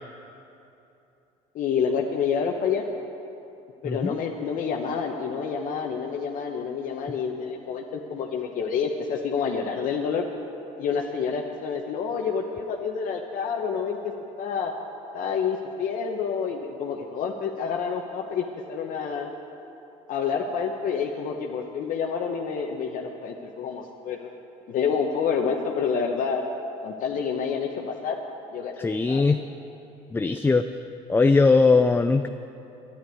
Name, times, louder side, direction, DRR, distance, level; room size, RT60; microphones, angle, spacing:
voice 1, 1.5-2.9 3.8-10.2 10.8-14.0 14.4-14.7 15.1-19.3 20.1-24.3 24.7-26.4 26.8-28.2 28.5-29.3, left 6 dB, 60° left, 1 dB, 1.1 m, -28 dB
voice 2, 3.8-4.2 28.8-29.4 30.1-30.6 31.1-32.3, left 3 dB, 15° left, 8 dB, 0.4 m, -20 dB
11.5 x 10.0 x 9.2 m, 2.8 s
supercardioid pair, 95°, 16 cm